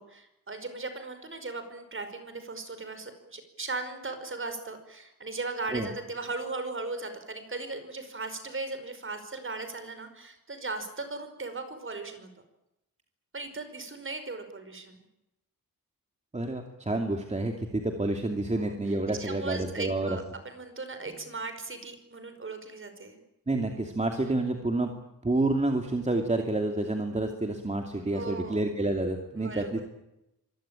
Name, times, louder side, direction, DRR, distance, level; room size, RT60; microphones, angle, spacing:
voice 1, 0.0-12.3 13.3-15.0 18.6-18.7 19.2-23.2 28.1-28.6 29.4-29.8, right 3 dB, 35° right, 9 dB, 5.3 m, -38 dB
voice 2, 16.3-20.2 21.1-21.2 23.5-24.9 25.2-29.8, right 2 dB, 20° right, 4 dB, 2.6 m, -29 dB
25.5 x 21.5 x 9.0 m, 0.88 s
wide cardioid pair, 145°, 35 cm